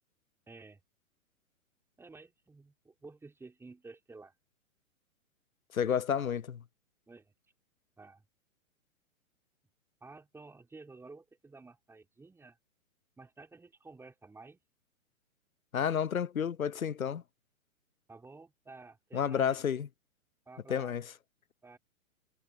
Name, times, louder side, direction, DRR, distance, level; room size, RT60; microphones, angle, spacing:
voice 1, 0.5-0.8 2.0-4.3 7.1-7.3 8.0-8.2 10.0-12.6 13.2-14.6 18.1-19.6 20.5-20.9 21.6-21.8, right 3 dB, 5° right, 4.1 m, -52 dB
voice 2, 5.7-6.6 15.7-17.2 19.1-19.9 20.7-21.0, left 8 dB, 85° left, 0.5 m, -30 dB
figure-of-eight pair, 115°, 40 cm